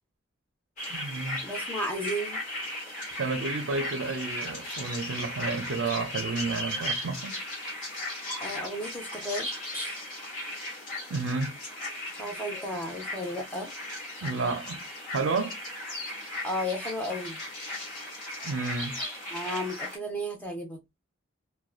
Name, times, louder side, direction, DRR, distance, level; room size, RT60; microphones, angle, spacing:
sound 1, 0.8-20.0, left 1 dB, 40° left, 1.2 m, -36 dB
voice 1, 0.9-1.5 3.2-7.4 11.1-11.6 14.2-14.8 15.1-15.6 18.4-19.0, right 3 dB, 75° right, 0.5 m, -31 dB
voice 2, 1.4-2.4 8.4-10.0 12.2-13.7 16.4-17.4 19.3-20.8, equal, 10° left, 0.5 m, -34 dB
2.5 x 2.1 x 2.3 m
head